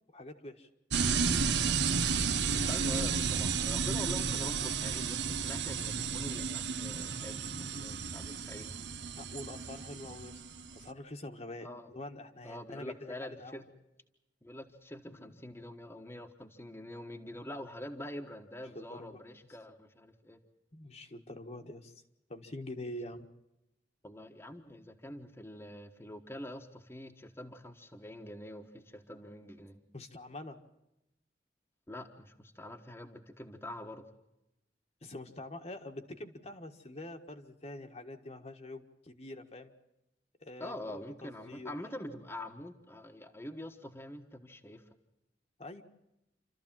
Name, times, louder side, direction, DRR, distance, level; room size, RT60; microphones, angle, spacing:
voice 1, 0.1-0.7 9.1-10.4 10.7-13.6 15.1-15.3 18.7-19.2 20.7-22.0 22.3-23.3 29.9-30.6 35.0-39.7 40.4-41.7 45.6-45.8, left 1 dB, 40° left, 4 dB, 1.5 m, -45 dB
sound 1, 0.9-10.8, right 5 dB, 75° right, 1.0 m, -32 dB
voice 2, 2.7-8.7 11.6-11.9 12.4-13.7 14.4-20.4 24.0-29.8 31.9-34.1 40.6-44.8, left 1 dB, 15° left, 3 dB, 1.4 m, -45 dB
28.0 x 13.5 x 7.4 m, 0.89 s
head